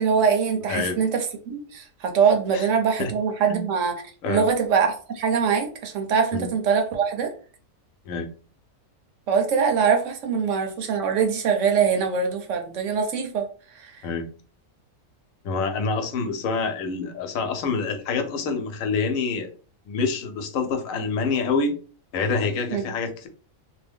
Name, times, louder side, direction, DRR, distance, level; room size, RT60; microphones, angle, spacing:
voice 1, 0.0-4.0 4.3-7.3 9.3-13.5 22.7-22.8, right 6 dB, 70° right, 5 dB, 1.0 m, -23 dB
voice 2, 0.7-1.0 2.5-2.7 3.0-3.1 3.4-3.7 4.2-4.5 6.3-6.5 8.1-8.3 14.0-14.3 15.4-19.5 19.9-21.8 22.1-23.3, left 4 dB, 85° left, 6 dB, 1.0 m, -26 dB
2.7 x 2.1 x 3.4 m, 0.39 s
omnidirectional pair, 1.4 m